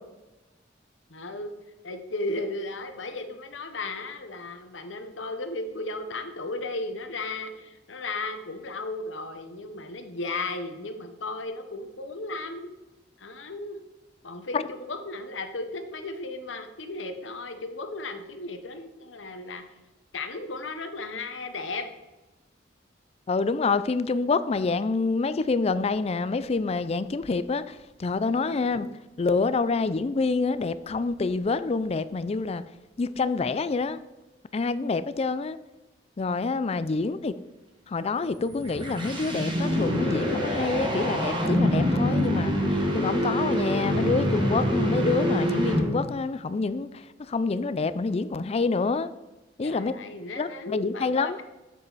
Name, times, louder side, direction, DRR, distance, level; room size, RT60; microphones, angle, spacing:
voice 1, 1.1-1.5 1.8-12.7 13.2-13.8 14.2-19.6 20.1-21.9 28.5-29.0 49.6-51.4, left 2 dB, 85° left, 7 dB, 1.0 m, -35 dB
voice 2, 23.3-28.9 29.2-32.6 33.0-34.0 34.5-35.6 36.2-37.4 37.9-49.1 49.6-49.9 50.4-51.4, left 4 dB, 35° left, 14 dB, 0.4 m, -27 dB
sound 1, 38.4-46.2, equal, 25° right, 1.7 m, -25 dB
7.7 x 7.4 x 4.1 m, 1.0 s
head